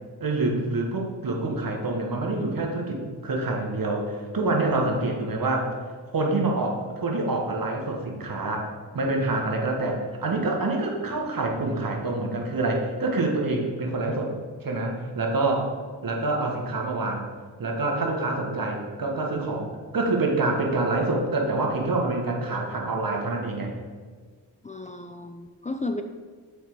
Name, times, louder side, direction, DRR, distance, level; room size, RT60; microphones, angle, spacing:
voice 1, 0.2-5.7 6.1-8.7 8.9-14.3 14.6-15.7 16.0-17.3 17.6-23.7, right 2 dB, 55° right, 1 dB, 1.5 m, -26 dB
voice 2, 24.6-26.0, left 2 dB, 20° left, 6 dB, 0.4 m, -33 dB
6.5 x 4.9 x 4.5 m, 1.5 s
cardioid pair, 50°, 42 cm